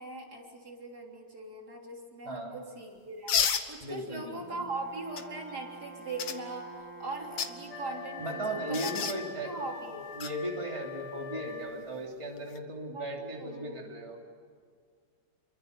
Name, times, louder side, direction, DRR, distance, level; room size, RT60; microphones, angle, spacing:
voice 1, 0.0-3.3 3.7-9.1 9.4-10.2 12.9-13.7, right 2 dB, 50° right, 0 dB, 3.9 m, -40 dB
voice 2, 2.2-2.6 3.8-4.6 8.2-9.5 9.9-14.2, right 1 dB, 15° right, 0 dB, 3.1 m, -37 dB
sound 1, 3.3-3.7 5.2-5.3 6.2-6.4 7.2-7.5 8.7-9.2 10.2-10.3 12.4-12.6, left 7 dB, 70° left, 2.0 m, -29 dB
Brass instrument, 4.4-8.8, right 3 dB, 80° right, 3.6 m, -47 dB
Wind instrument woodwind instrument, 7.7-12.1, left 7 dB, 40° left, 4.5 m, -43 dB
29.0 x 23.5 x 6.8 m, 2.1 s
omnidirectional pair, 2.2 m